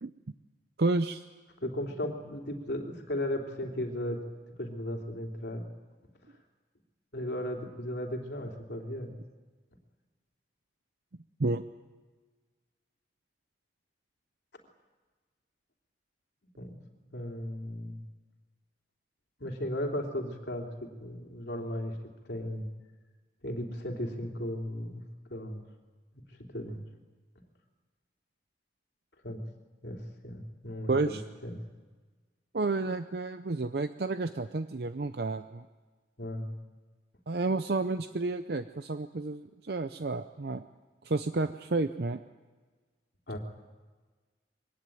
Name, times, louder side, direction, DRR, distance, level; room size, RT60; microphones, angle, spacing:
voice 1, 0.8-1.2 11.4-11.6 30.9-31.2 32.5-35.6 37.3-40.6 41.0-42.2, right 3 dB, 60° right, 10 dB, 0.6 m, -30 dB
voice 2, 1.6-4.2 4.6-5.7 7.1-9.1 16.6-16.7 17.1-18.0 19.4-21.9 22.3-22.7 23.4-25.0 25.3-25.6 26.1-26.2 26.5-26.8 29.2-29.4 29.8-31.6 36.2-36.5 43.3-43.4, left 1 dB, 70° left, 3 dB, 3.0 m, -36 dB
23.0 x 17.5 x 9.1 m, 1.4 s
head